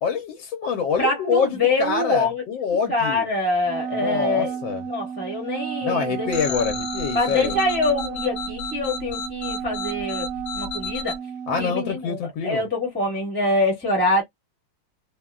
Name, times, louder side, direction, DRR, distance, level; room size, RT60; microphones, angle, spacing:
voice 1, 0.0-3.3 3.9-4.8 5.8-7.6 11.5-12.6, left 6 dB, 85° left, 1.4 m, -26 dB
voice 2, 1.0-2.4 2.9-4.5 4.8-6.3 7.1-10.3 10.5-11.2 11.6-14.2, left 2 dB, 10° left, 0.8 m, -24 dB
Wind instrument woodwind instrument, 3.6-11.8, right 7 dB, 75° right, 1.3 m, -32 dB
sound 1, 6.3-11.2, left 5 dB, 60° left, 1.0 m, -32 dB
3.6 x 2.2 x 2.2 m
omnidirectional pair, 2.1 m